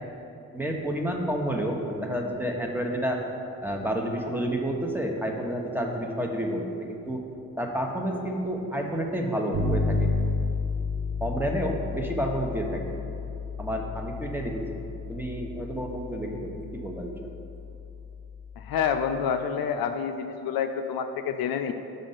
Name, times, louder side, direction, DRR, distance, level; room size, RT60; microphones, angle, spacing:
voice 1, 0.5-3.2 3.6-7.2 7.6-10.1 11.2-12.8 13.6-14.7 15.1-17.2, right 1 dB, 5° right, 1 dB, 1.0 m, -30 dB
Bass guitar, 9.5-19.2, left 3 dB, 65° right, 1.1 m, -32 dB
voice 2, 18.6-21.7, left 7 dB, 65° left, 7 dB, 0.5 m, -28 dB
5.4 x 5.0 x 5.6 m, 2.8 s
supercardioid pair, 50°, 39 cm